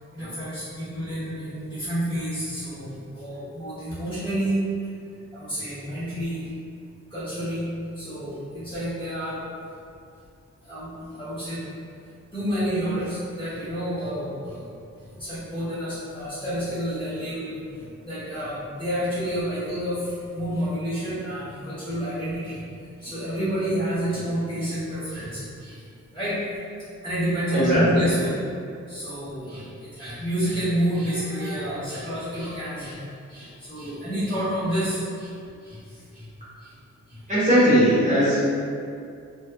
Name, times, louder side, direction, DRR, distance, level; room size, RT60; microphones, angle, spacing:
voice 1, 0.1-4.9 5.3-6.5 7.1-7.7 7.9-9.4 10.6-11.7 12.3-14.7 15.0-22.6 23.0-25.8 26.1-26.4 27.0-28.4 28.9-33.0 33.3-35.3 35.6-36.3 36.6-36.8 37.1-37.2, equal, 15° left, -13 dB, 0.9 m, -29 dB
voice 2, 37.3-38.4, equal, 25° right, -12 dB, 1.1 m, -18 dB
3.2 x 2.2 x 2.3 m, 2.4 s
wide cardioid pair, 150°, 29 cm